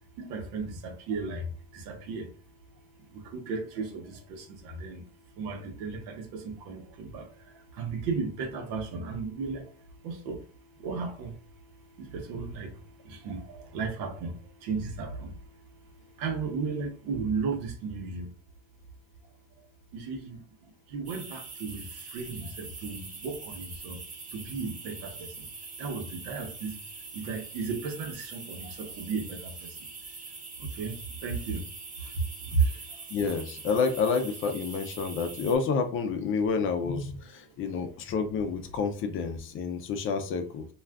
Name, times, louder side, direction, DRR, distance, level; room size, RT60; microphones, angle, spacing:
voice 1, 0.2-1.4 1.7-2.3 3.3-5.0 5.4-7.3 7.8-9.6 10.0-10.4 10.8-11.3 12.1-12.7 13.1-14.3 14.6-15.3 16.2-18.3 19.9-20.4 20.9-21.8 22.1-24.0 24.3-25.1 25.8-26.7 27.1-29.5 30.8-30.9 31.2-31.6 32.5-32.6, right 5 dB, 90° right, 0.9 m, -34 dB
sound 1, 21.1-35.6, right 4 dB, 25° right, 0.6 m, -43 dB
voice 2, 33.1-40.7, left 5 dB, 40° left, 0.4 m, -29 dB
2.4 x 2.3 x 3.4 m
cardioid pair, 160°, 35 cm